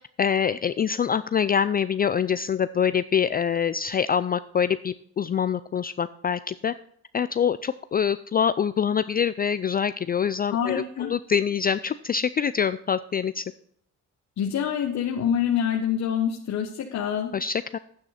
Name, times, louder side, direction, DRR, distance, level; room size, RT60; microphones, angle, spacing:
voice 1, 0.2-6.7 7.1-13.4 17.3-17.8, left 7 dB, 30° left, 14 dB, 0.4 m, -25 dB
voice 2, 10.5-11.1 14.4-17.3, left 8 dB, 65° left, 1 dB, 1.3 m, -26 dB
9.5 x 8.9 x 4.2 m, 0.67 s
cardioid pair, 90°, 30 cm